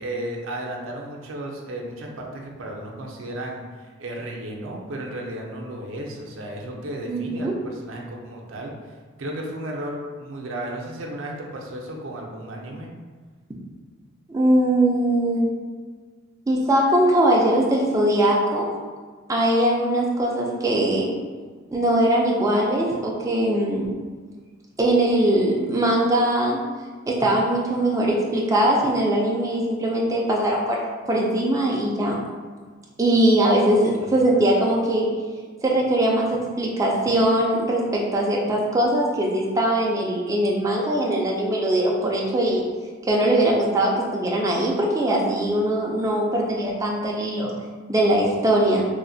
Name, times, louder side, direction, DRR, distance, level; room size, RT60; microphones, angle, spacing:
voice 1, 0.0-8.7 9.2-12.9 34.0-34.2, right 1 dB, 75° right, 0 dB, 0.5 m, -34 dB
voice 2, 7.1-7.5 14.3-15.5 16.5-18.7 19.3-21.1 21.7-23.9 24.8-26.6 27.1-32.2 33.0-35.1 35.6-42.6 43.0-47.5 47.9-48.8, right 1 dB, 15° right, -3 dB, 0.3 m, -21 dB
3.0 x 2.1 x 2.6 m, 1.5 s
head